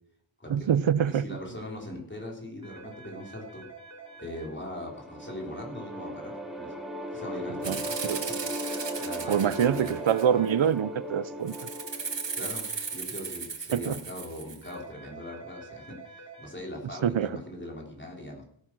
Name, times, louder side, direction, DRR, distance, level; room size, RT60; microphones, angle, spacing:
voice 1, 0.5-1.2 7.7-8.2 9.3-11.5 13.7-14.0 17.0-17.4, right 8 dB, 85° right, 0.7 m, -25 dB
voice 2, 1.1-3.6 4.2-6.7 7.1-8.2 9.0-10.0 12.4-12.6 12.9-18.4, left 1 dB, 25° left, 4.2 m, -40 dB
sound 1, 2.6-4.5 8.6-10.5 14.6-16.5, right 3 dB, 35° right, 3.4 m, -47 dB
Lifetime Movie, 4.3-13.5, equal, ahead, 2.7 m, -38 dB
Rattle (instrument), 7.6-10.5 11.5-14.7, right 5 dB, 70° right, 1.8 m, -36 dB
17.0 x 9.8 x 6.2 m
wide cardioid pair, 65°, 45 cm